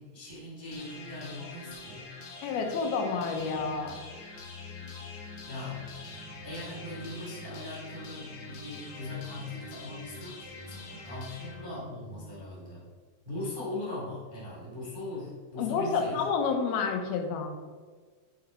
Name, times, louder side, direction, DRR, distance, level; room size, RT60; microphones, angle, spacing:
voice 1, 0.0-2.0 5.4-5.8 6.4-12.8 13.2-16.2, left 2 dB, 20° right, -7 dB, 1.3 m, -40 dB
sound 1, 0.7-12.7, left 2 dB, 65° left, 2.0 m, -44 dB
voice 2, 2.4-4.0 15.6-17.5, left 5 dB, 85° left, 4 dB, 2.7 m, -29 dB
8.7 x 4.0 x 4.3 m, 1.5 s
omnidirectional pair, 4.3 m